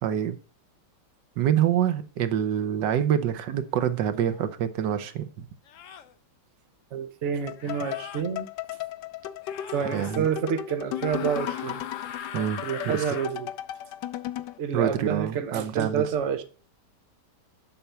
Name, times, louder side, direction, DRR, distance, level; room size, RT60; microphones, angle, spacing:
voice 1, 0.0-0.4 1.4-5.4 9.9-10.3 12.3-12.6 12.9-13.2 14.7-16.1, right 10 dB, 80° right, 1.4 m, -26 dB
sound 1, 4.3-4.4 5.7-6.1 7.6-8.2 9.4-10.2 10.9-13.3, left 8 dB, 60° left, 0.9 m, -40 dB
voice 2, 6.9-8.5 9.7-11.8 12.6-13.5 14.6-16.4, right 7 dB, 50° right, 1.1 m, -28 dB
sound 2, 7.5-14.6, left 12 dB, 80° left, 1.3 m, -36 dB
8.1 x 5.7 x 6.7 m
omnidirectional pair, 1.9 m